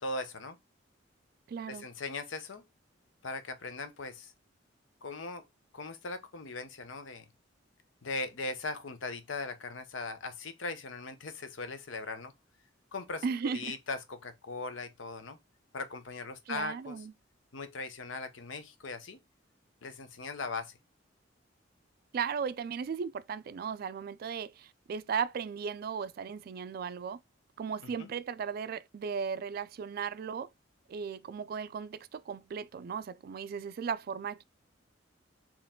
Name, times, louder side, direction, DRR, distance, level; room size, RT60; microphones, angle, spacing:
voice 1, 0.0-0.6 1.7-2.6 3.2-4.3 5.0-5.4 5.7-7.2 8.0-12.3 12.9-15.4 15.7-17.0 17.5-19.2 19.8-20.8 27.8-28.1, left 3 dB, 80° left, 0.8 m, -39 dB
voice 2, 1.5-1.9 13.2-13.7 16.5-17.1 22.1-27.2 27.6-30.5 30.9-34.4, right 6 dB, 50° right, 0.3 m, -36 dB
4.5 x 3.0 x 3.6 m
head